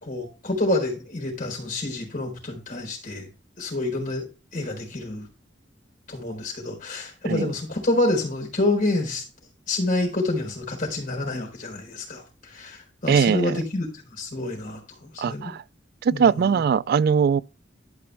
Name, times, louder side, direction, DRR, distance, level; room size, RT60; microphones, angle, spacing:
voice 1, 0.0-3.3 3.6-4.3 4.5-5.3 6.1-9.2 9.7-15.5 16.1-16.6, left 2 dB, 50° left, 4.1 m, -28 dB
voice 2, 13.1-13.6 15.2-15.6 16.0-17.4, right 6 dB, 55° right, 0.3 m, -21 dB
12.0 x 5.1 x 3.3 m
head